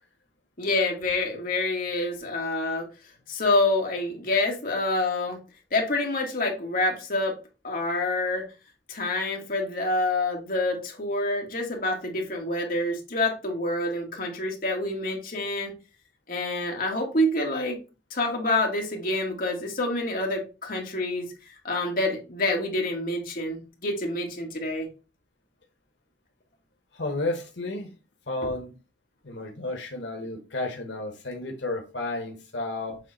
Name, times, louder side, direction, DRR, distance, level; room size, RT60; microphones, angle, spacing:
voice 1, 0.6-2.9 3.3-5.4 5.7-7.3 7.6-8.4 8.9-15.7 16.3-17.8 18.1-21.3 21.6-24.9, left 2 dB, 50° left, 0 dB, 1.8 m, -27 dB
voice 2, 26.9-27.9 28.3-28.7 29.2-33.0, left 2 dB, 90° left, 3 dB, 1.1 m, -32 dB
7.5 x 3.2 x 4.1 m, 0.31 s
head